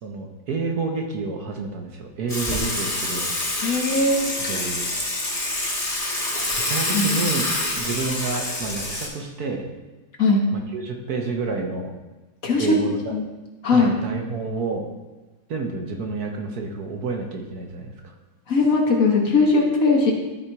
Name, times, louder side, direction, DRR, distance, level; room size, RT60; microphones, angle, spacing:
voice 1, 0.0-3.3 4.3-4.9 6.6-7.4 7.8-9.7 10.5-11.9 12.6-13.2 13.7-14.9 15.5-18.1, right 4 dB, 60° right, 2 dB, 1.3 m, -29 dB
Water / Water tap faucet / Sink (filling or washing), 2.3-9.1, left 1 dB, 20° left, 1.3 m, -26 dB
voice 2, 3.6-4.2 6.9-7.1 10.2-10.4 12.4-12.7 13.1-13.2 13.6-13.9 18.5-20.1, left 3 dB, 50° left, 0 dB, 1.4 m, -19 dB
13.0 x 4.4 x 4.6 m, 1.1 s
omnidirectional pair, 2.0 m